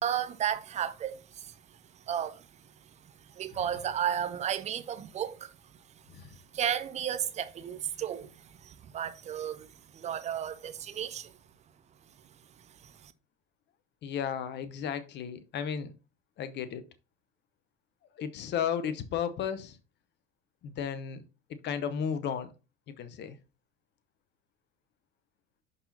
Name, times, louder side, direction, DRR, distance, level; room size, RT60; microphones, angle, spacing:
voice 1, 0.0-1.5 1.9-2.5 3.3-5.5 6.5-11.3 12.8-13.1, right 9 dB, 20° right, 0.5 m, -33 dB
voice 2, 14.0-15.9 16.4-16.8 18.2-19.8 20.6-21.2 21.6-22.5 23.0-23.4, left 8 dB, 30° left, 0.8 m, -34 dB
11.0 x 4.0 x 2.7 m
figure-of-eight pair, 75°, 38 cm